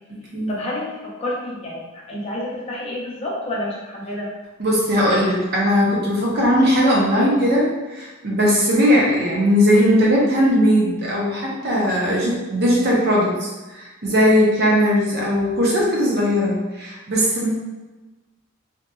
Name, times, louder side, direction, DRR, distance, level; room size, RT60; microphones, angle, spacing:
voice 1, 0.5-4.3, left 1 dB, 30° left, -5 dB, 0.5 m, -29 dB
voice 2, 4.6-17.5, equal, 50° right, -4 dB, 0.7 m, -18 dB
2.8 x 2.5 x 2.2 m, 1.2 s
head